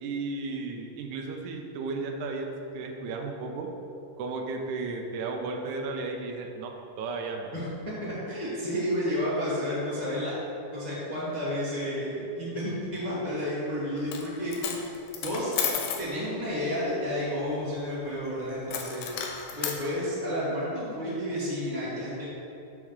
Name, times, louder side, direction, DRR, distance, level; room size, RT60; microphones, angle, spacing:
voice 1, 0.0-3.7 4.2-6.7 7.0-7.5, right 3 dB, 75° right, 2 dB, 2.0 m, -34 dB
voice 2, 8.0-10.3 10.7-15.5 16.0-19.1 19.5-22.3, equal, 55° left, -9 dB, 0.4 m, -31 dB
Coin (dropping), 14.0-14.3 14.5-16.1 18.7-19.8, left 7 dB, 85° left, 2.5 m, -32 dB
7.3 x 4.7 x 6.4 m, 2.7 s
omnidirectional pair, 4.0 m